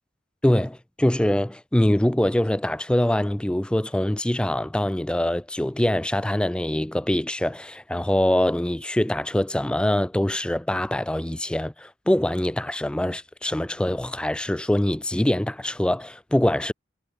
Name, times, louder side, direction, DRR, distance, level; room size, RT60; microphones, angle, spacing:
voice 1, 0.4-16.7, left 1 dB, 5° left, 0.3 m, -24 dB
head